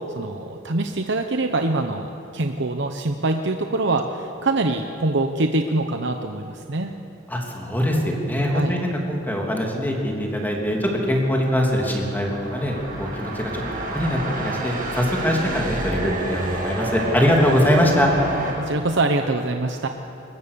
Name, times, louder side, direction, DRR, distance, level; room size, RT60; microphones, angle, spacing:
voice 1, 0.1-6.9 8.5-8.7 18.6-19.9, right 2 dB, 65° right, 5 dB, 1.0 m, -24 dB
voice 2, 7.3-18.1, equal, 10° left, -1 dB, 3.0 m, -22 dB
sound 1, 10.6-18.5, right 1 dB, 50° right, 6.5 m, -30 dB
23.0 x 20.5 x 6.9 m, 3.0 s
head